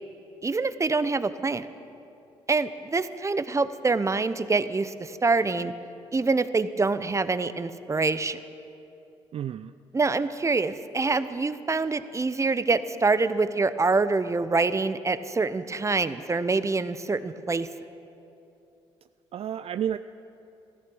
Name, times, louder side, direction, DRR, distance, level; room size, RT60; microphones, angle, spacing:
voice 1, 0.4-1.7 2.5-5.7 6.1-8.4 9.9-17.7, right 3 dB, 25° right, 13 dB, 0.7 m, -25 dB
voice 2, 9.3-9.7 19.3-20.0, right 9 dB, 50° right, 12 dB, 0.4 m, -30 dB
14.5 x 14.0 x 6.2 m, 2.8 s
hypercardioid pair, 55°, 13 cm